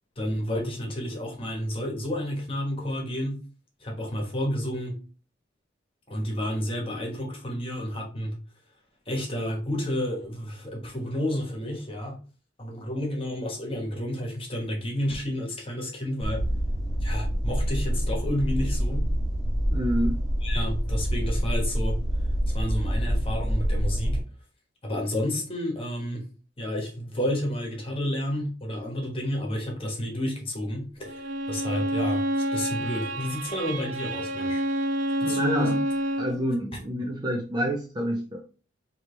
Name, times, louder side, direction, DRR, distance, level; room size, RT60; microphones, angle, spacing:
voice 1, 0.2-3.4 3.8-5.0 6.1-8.3 9.1-12.2 12.6-16.4 17.0-19.1 20.4-22.0 22.5-24.2 24.8-26.3 26.6-32.2 32.5-34.6 35.2-35.7 36.3-36.4, left 1 dB, 30° left, 1.2 m, -30 dB
sound 1, 16.2-24.2, equal, ahead, 1.4 m, -26 dB
voice 2, 19.7-20.2 35.2-35.8 36.2-38.4, equal, 20° right, 0.6 m, -28 dB
Bowed string instrument, 31.0-36.4, right 1 dB, 80° right, 0.5 m, -28 dB
4.8 x 3.0 x 3.1 m
head